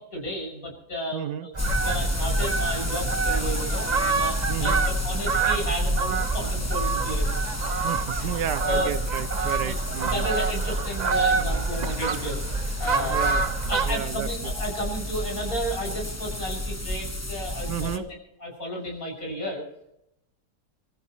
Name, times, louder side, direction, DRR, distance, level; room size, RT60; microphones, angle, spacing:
voice 1, 0.0-1.5 1.8-7.3 8.2-8.3 8.6-8.9 9.6-13.4 13.7-18.1 18.4-19.6, equal, 55° left, 7.2 m, -33 dB
voice 2, 1.1-1.5 4.5-4.9 7.8-10.3 13.1-13.4 13.8-14.5 17.7-18.1, right 10 dB, 85° right, 1.4 m, -32 dB
Fowl, 1.5-14.0, right 4 dB, 40° right, 0.6 m, -27 dB
sound 1, 1.6-18.0, left 1 dB, 10° left, 1.0 m, -30 dB
29.0 x 14.5 x 3.1 m
omnidirectional pair, 1.8 m